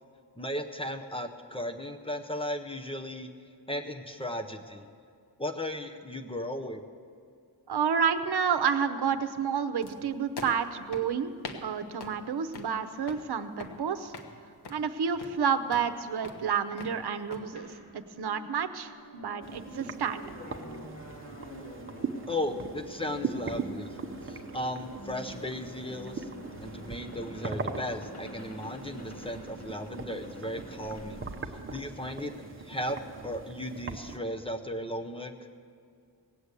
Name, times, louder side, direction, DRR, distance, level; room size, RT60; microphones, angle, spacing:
voice 1, 0.4-3.3 3.7-4.9 5.4-6.8 22.3-23.9 24.2-26.3 26.6-31.3 31.7-32.3 32.6-33.0 33.2-35.3, left 1 dB, 15° left, 3 dB, 0.6 m, -36 dB
voice 2, 7.7-11.3 11.6-14.1 14.7-20.2, right 7 dB, 75° right, 11 dB, 0.8 m, -30 dB
sound 1, 9.8-17.4, left 3 dB, 80° left, 1.2 m, -45 dB
sound 2, 17.6-32.3, equal, 40° left, 1.8 m, -47 dB
sound 3, 19.4-34.2, right 4 dB, 30° right, 0.8 m, -40 dB
18.0 x 8.0 x 8.2 m, 2.3 s
wide cardioid pair, 165°, 40 cm